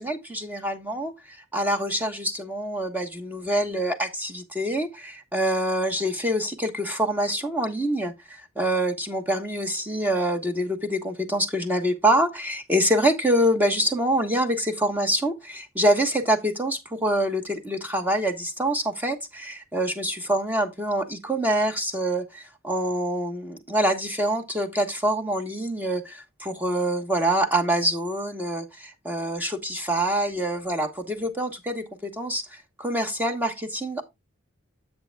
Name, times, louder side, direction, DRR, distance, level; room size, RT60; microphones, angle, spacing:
voice 1, 0.0-34.0, right 1 dB, 10° right, 1.2 m, -25 dB
9.8 x 7.9 x 2.3 m
head